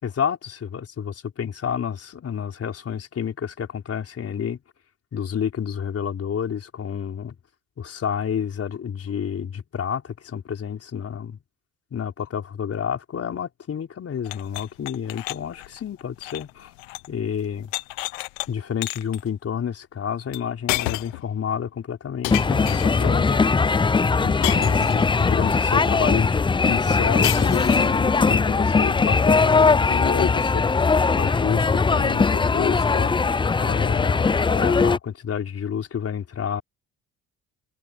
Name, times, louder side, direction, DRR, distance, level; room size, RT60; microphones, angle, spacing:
voice 1, 0.0-4.6 5.1-7.4 7.8-11.4 11.9-16.7 17.1-17.7 18.5-23.6 24.2-36.6, left 8 dB, 50° left, 4.4 m, -29 dB
sound 1, 14.2-17.1 17.4-18.5 18.8-19.2 20.3-20.4 20.7-21.3 22.2-23.1 24.4-25.2 27.2-28.0, left 25 dB, 80° left, 1.0 m, -31 dB
sound 2, 22.3-35.0, left 4 dB, 15° left, 0.5 m, -20 dB
hypercardioid pair, 55°, 31 cm